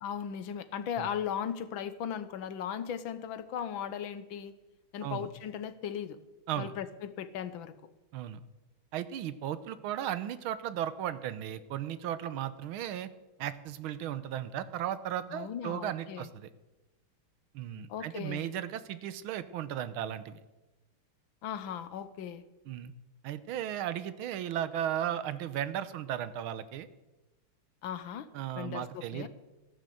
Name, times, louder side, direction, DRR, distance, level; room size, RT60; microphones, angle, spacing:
voice 1, 0.0-4.5 4.9-6.2 6.6-7.7 15.3-16.3 17.9-18.5 21.4-22.4 27.8-28.3 28.6-29.3, left 8 dB, 70° left, 12 dB, 1.7 m, -37 dB
voice 2, 8.9-13.1 13.4-16.5 17.5-20.4 22.7-22.9 23.2-26.9 28.3-29.3, right 11 dB, 75° right, 14 dB, 1.7 m, -35 dB
14.0 x 10.5 x 7.8 m, 1.1 s
omnidirectional pair, 2.4 m